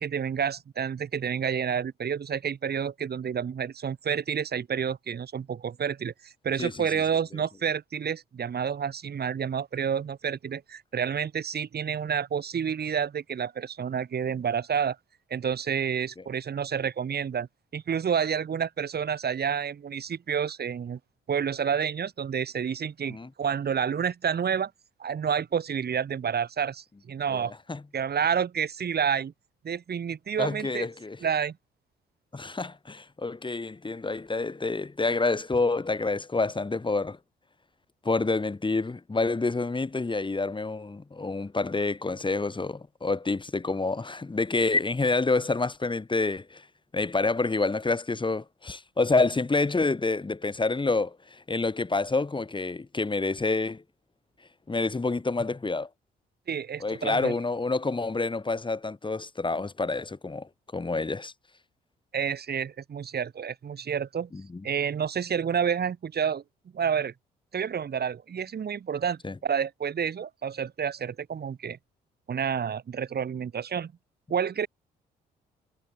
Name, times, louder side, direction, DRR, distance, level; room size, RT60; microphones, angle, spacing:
voice 1, 0.0-15.0 15.3-17.5 17.7-21.0 21.3-24.7 25.0-27.5 27.9-29.3 29.6-30.9 31.2-31.6 56.5-57.3 62.1-64.3 64.6-66.4 66.7-67.1 67.5-71.8 72.3-73.9 74.3-74.7, right 7 dB, 50° right, 7.3 m, -29 dB
voice 2, 6.6-7.0 23.1-23.3 27.3-27.8 30.4-31.2 32.3-37.2 38.0-46.7 46.9-53.8 54.7-55.9 56.8-61.3 64.3-64.6 69.2-69.3, left 3 dB, 25° left, 2.6 m, -28 dB
hypercardioid pair, 50°, 21 cm